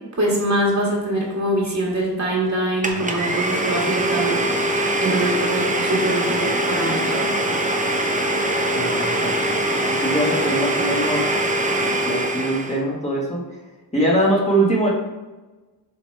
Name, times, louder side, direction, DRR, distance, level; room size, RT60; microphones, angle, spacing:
voice 1, 0.2-7.3, right 1 dB, 40° right, -4 dB, 1.9 m, -24 dB
Domestic sounds home sounds, 2.8-12.8, right 1 dB, 20° right, 0.8 m, -22 dB
voice 2, 8.3-11.2 12.0-13.4 13.9-14.9, right 1 dB, 15° left, -6 dB, 1.6 m, -23 dB
7.1 x 5.0 x 3.4 m, 1.2 s
wide cardioid pair, 130°, 42 cm